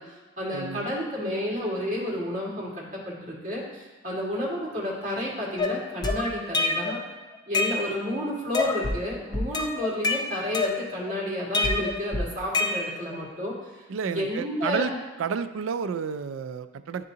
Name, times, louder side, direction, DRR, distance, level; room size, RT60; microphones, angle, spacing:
voice 1, 0.0-7.0 7.5-15.0, left 1 dB, 40° right, -5 dB, 1.8 m, -31 dB
voice 2, 0.5-0.9 13.9-14.9 15.2-17.0, right 6 dB, 75° right, 12 dB, 0.3 m, -31 dB
sound 1, 5.6-7.0 7.3-8.2 8.5-9.0 9.3-11.1 11.5-13.2, left 3 dB, 20° left, 0.5 m, -27 dB
10.5 x 3.7 x 2.8 m, 1.2 s
head